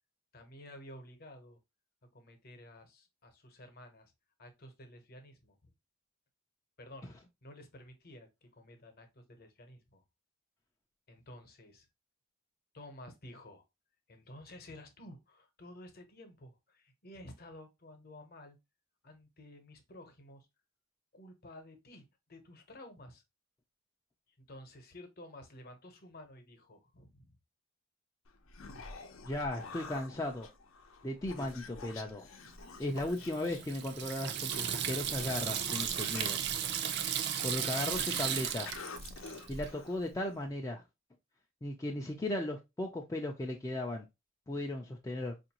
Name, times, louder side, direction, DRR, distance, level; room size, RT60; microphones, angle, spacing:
voice 1, 0.3-1.6 2.1-4.1 4.4-5.7 6.8-7.1 7.4-10.0 11.1-11.9 12.7-13.6 14.1-18.6 19.0-20.5 21.1-23.2 24.4-27.4, left 1 dB, 45° left, 0.8 m, -52 dB
Human voice, 28.3-40.5, left 4 dB, 80° left, 0.6 m, -49 dB
voice 2, 29.3-30.5 31.0-32.3 32.8-36.4 37.4-38.7 39.5-40.8 41.6-44.1 44.5-45.3, left 1 dB, 15° left, 0.3 m, -36 dB
Water tap faucet / Sink (filling or washing), 33.0-39.7, right 9 dB, 55° right, 0.4 m, -35 dB
4.5 x 2.5 x 2.8 m
head